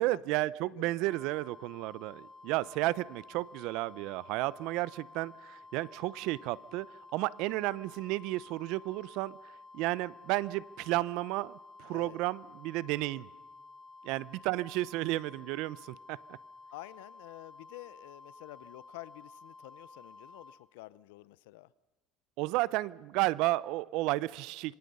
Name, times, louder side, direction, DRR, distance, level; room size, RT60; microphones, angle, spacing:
voice 1, 0.0-9.4 9.7-13.3 14.0-16.4 22.4-24.7, right 18 dB, 75° right, 0.7 m, -32 dB
voice 2, 0.7-1.1 11.9-12.2 16.7-21.7, left 19 dB, 85° left, 0.7 m, -49 dB
sound 1, 1.1-20.6, left 3 dB, 20° left, 4.0 m, -53 dB
27.5 x 24.5 x 5.5 m
supercardioid pair, 100°, 0 cm